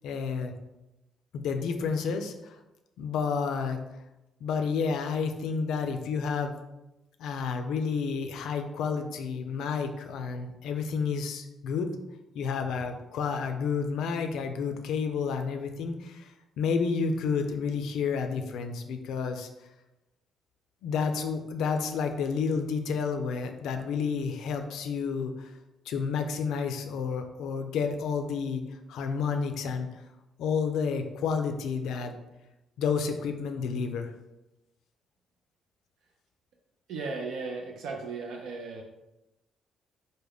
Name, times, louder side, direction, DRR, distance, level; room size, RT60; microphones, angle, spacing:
voice 1, 0.0-0.5 1.3-2.6 3.0-3.8 4.4-6.5 7.2-11.9 12.3-16.3 16.6-19.5 20.8-25.5 25.9-28.6 28.9-29.9 30.4-32.1 32.8-34.1, left 5 dB, 85° left, 6 dB, 0.3 m, -30 dB
voice 2, 36.9-38.8, right 4 dB, 85° right, 1 dB, 0.4 m, -36 dB
3.3 x 2.1 x 3.5 m, 0.96 s
cardioid pair, 90°, 0 cm